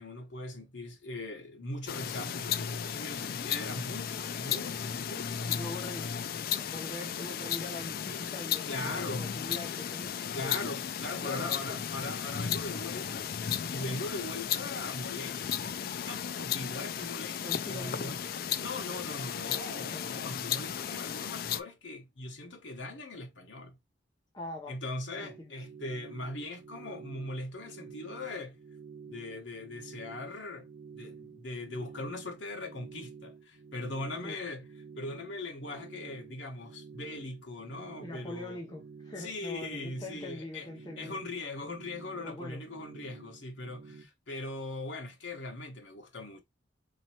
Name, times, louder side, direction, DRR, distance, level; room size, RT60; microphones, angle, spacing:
voice 1, 0.0-5.5 8.7-9.3 10.3-13.3 13.7-18.2 18.6-23.8 24.7-28.6 29.1-30.7 30.9-34.7 35.0-38.6 39.2-40.7 41.0-46.4, left 2 dB, 75° left, 1.1 m, -40 dB
sound 1, 1.9-21.6, left 8 dB, 50° left, 0.3 m, -35 dB
voice 2, 5.0-10.6 11.2-11.8 17.4-18.2 19.9-20.0 24.3-24.8 25.2-25.6 34.2-34.4 38.0-41.2 42.1-42.6, left 2 dB, 20° left, 0.7 m, -43 dB
sound 2, 25.1-44.0, right 5 dB, 90° right, 0.8 m, -50 dB
4.2 x 3.0 x 2.8 m
head